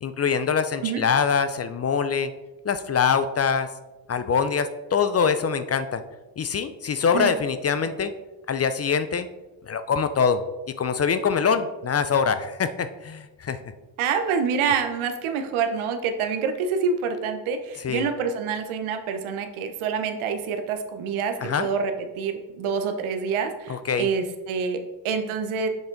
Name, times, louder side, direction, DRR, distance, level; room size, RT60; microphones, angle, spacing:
voice 1, 0.0-2.3 2.6-3.7 4.1-6.0 6.4-8.1 8.5-9.3 9.7-10.4 10.8-13.6 17.8-18.1 21.4-21.7 23.7-24.1, left 6 dB, 35° left, 11 dB, 0.5 m, -24 dB
voice 2, 14.0-25.7, right 6 dB, 80° right, 6 dB, 0.9 m, -27 dB
7.0 x 3.9 x 3.8 m, 1.1 s
cardioid pair, 75°, 47 cm